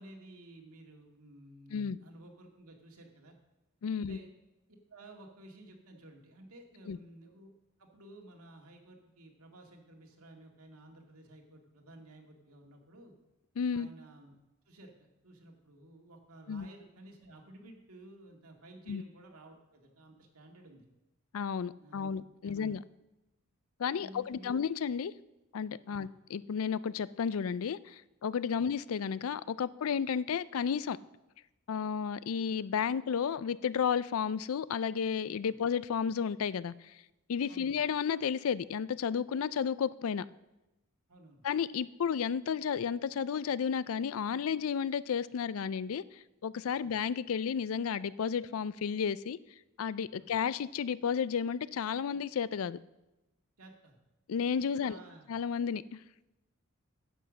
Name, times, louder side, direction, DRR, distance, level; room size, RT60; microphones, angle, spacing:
voice 1, 0.0-3.3 4.0-4.3 4.9-7.5 7.8-13.2 13.7-14.4 14.7-14.9 15.2-20.9 21.8-22.7 23.9-24.5 25.9-26.1 28.6-28.7 35.5-35.6 37.5-37.8 41.1-41.4 46.8-46.9 50.2-50.3 53.6-54.0 54.5-55.3, right 1 dB, 90° right, 2.0 m, -54 dB
voice 2, 3.8-4.2 6.9-7.0 13.6-13.9 16.5-16.7 18.9-19.0 21.3-22.8 23.8-25.1 25.5-31.0 31.7-36.7 37.3-40.3 41.4-46.0 46.4-49.4 49.8-52.8 54.3-55.0 55.3-55.8, left 7 dB, 70° left, 0.4 m, -32 dB
10.0 x 7.9 x 6.3 m
head